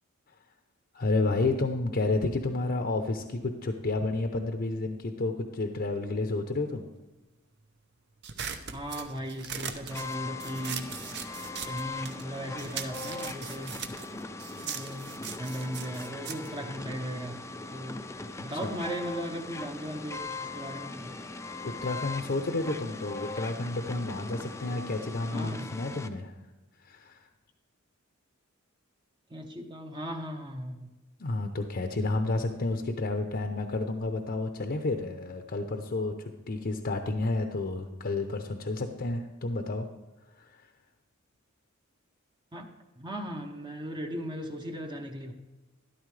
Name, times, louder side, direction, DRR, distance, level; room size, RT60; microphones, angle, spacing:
voice 1, 0.9-6.9 18.6-18.7 21.6-26.3 26.8-27.2 31.2-39.9 40.4-40.5, left 2 dB, 50° left, 5 dB, 0.7 m, -30 dB
sound 1, 8.2-12.3 12.6-17.4, right 7 dB, 55° right, 0.7 m, -40 dB
voice 2, 8.7-10.9 11.7-13.7 14.6-15.1 15.4-17.4 17.7-18.0 18.4-21.2 25.3-25.7 29.3-30.9 42.5-42.7 43.0-45.3, equal, 20° right, 3 dB, 0.7 m, -37 dB
sound 2, 9.9-26.1, left 3 dB, 15° left, 0.4 m, -40 dB
13.0 x 11.5 x 3.3 m, 1.1 s
head